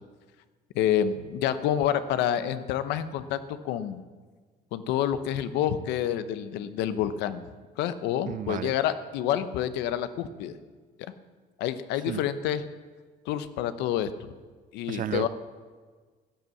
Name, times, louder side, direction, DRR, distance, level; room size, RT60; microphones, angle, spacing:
voice 1, 0.7-3.4 3.6-4.0 4.7-7.4 7.8-10.5 11.6-12.6 13.3-14.1 14.7-15.3, left 10 dB, 90° left, 12 dB, 0.8 m, -28 dB
voice 2, 8.3-8.7 12.1-12.2 14.9-15.3, right 11 dB, 55° right, 14 dB, 0.4 m, -32 dB
15.0 x 8.3 x 7.1 m, 1.4 s
cardioid pair, 110°, 17 cm